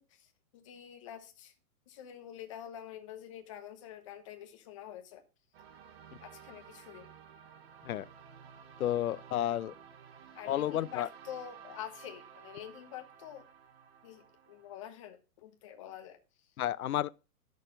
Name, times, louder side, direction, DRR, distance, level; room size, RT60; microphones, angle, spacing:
voice 1, 0.0-1.5 1.9-5.2 6.2-7.1 10.3-13.4 14.0-16.5, left 10 dB, 20° left, 0.9 m, -47 dB
sound 1, 5.5-14.8, right 7 dB, 45° right, 1.2 m, -54 dB
voice 2, 8.8-9.8 10.5-11.1 16.6-17.1, left 12 dB, 70° left, 0.7 m, -31 dB
11.5 x 6.6 x 3.8 m
hypercardioid pair, 170°, 44 cm